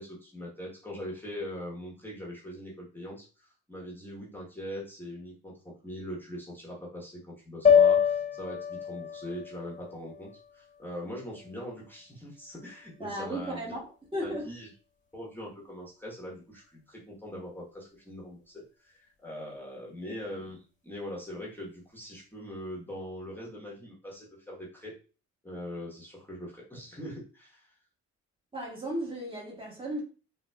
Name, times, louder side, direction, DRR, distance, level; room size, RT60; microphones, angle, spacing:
voice 1, 0.0-13.7 14.2-14.7 15.1-24.9 25.4-27.7, equal, 5° left, 1.1 m, -42 dB
sound 1, 7.6-11.9, left 7 dB, 25° left, 1.1 m, -27 dB
voice 2, 13.0-14.5 28.5-30.0, right 1 dB, 15° right, 1.5 m, -35 dB
3.9 x 2.6 x 2.3 m
cardioid pair, 90°, 30 cm